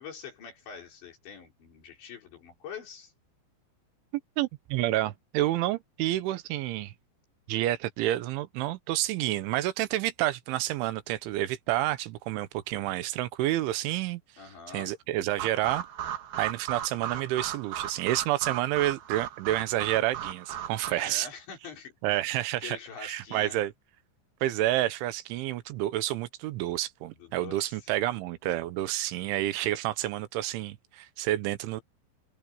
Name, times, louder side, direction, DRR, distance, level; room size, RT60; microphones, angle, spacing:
voice 1, 0.0-3.1 14.4-14.9 20.9-22.2 22.6-23.6 27.1-27.8, left 6 dB, 70° left, 7.4 m, -44 dB
voice 2, 4.4-6.9 7.5-14.2 14.7-15.9 16.4-21.3 22.0-23.7 24.4-31.8, right 15 dB, 85° right, 3.4 m, -29 dB
sound 1, 15.4-20.9, right 10 dB, 60° right, 3.6 m, -36 dB
omnidirectional pair, 5.4 m